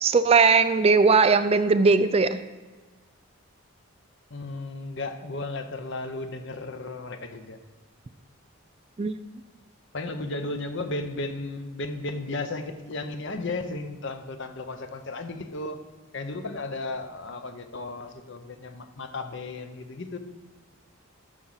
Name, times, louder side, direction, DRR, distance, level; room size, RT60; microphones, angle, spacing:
voice 1, 0.0-2.4 9.0-9.1, right 4 dB, 30° right, 12 dB, 0.3 m, -19 dB
voice 2, 4.3-7.6 9.9-15.8 16.1-20.2, left 2 dB, 55° left, 8 dB, 0.8 m, -34 dB
13.5 x 5.0 x 5.7 m, 1.3 s
head